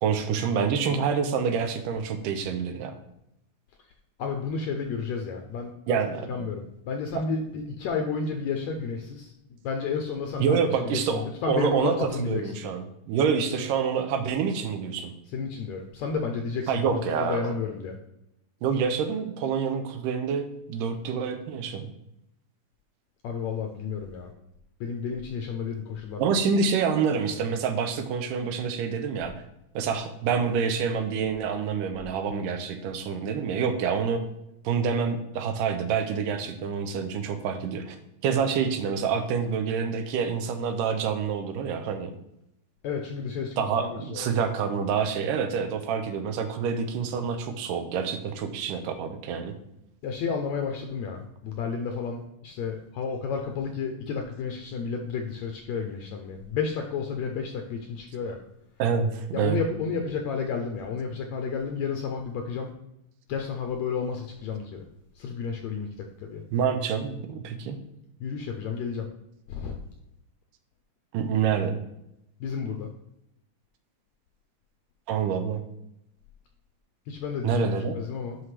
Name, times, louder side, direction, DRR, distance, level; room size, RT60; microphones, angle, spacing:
voice 1, 0.0-3.0 5.9-6.5 10.4-15.1 16.7-17.5 18.6-21.9 26.2-29.3 29.8-34.2 34.6-38.0 38.2-42.1 43.6-49.5 58.8-59.6 66.5-67.8 71.1-71.8 75.1-75.6 77.4-78.0, right 6 dB, 85° right, 8 dB, 2.4 m, -27 dB
voice 2, 4.2-6.0 6.3-9.3 9.6-10.6 10.9-12.4 15.3-17.9 23.2-24.3 24.8-26.4 42.8-44.3 50.0-58.4 59.3-62.7 63.3-64.8 65.2-66.4 68.2-69.1 69.5-69.8 72.4-72.9 77.1-78.4, left 5 dB, 75° left, 3 dB, 1.7 m, -31 dB
9.3 x 5.9 x 3.3 m, 0.82 s
omnidirectional pair, 3.7 m